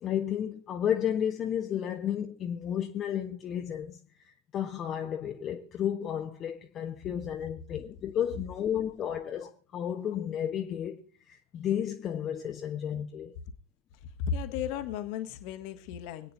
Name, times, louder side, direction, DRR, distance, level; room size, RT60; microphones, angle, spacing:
voice 1, 0.0-4.0 4.2-13.3, left 9 dB, 30° left, 0.9 m, -32 dB
voice 2, 14.2-16.3, left 7 dB, 45° left, 1.4 m, -34 dB
25.0 x 9.3 x 2.7 m
figure-of-eight pair, 90°, 0 cm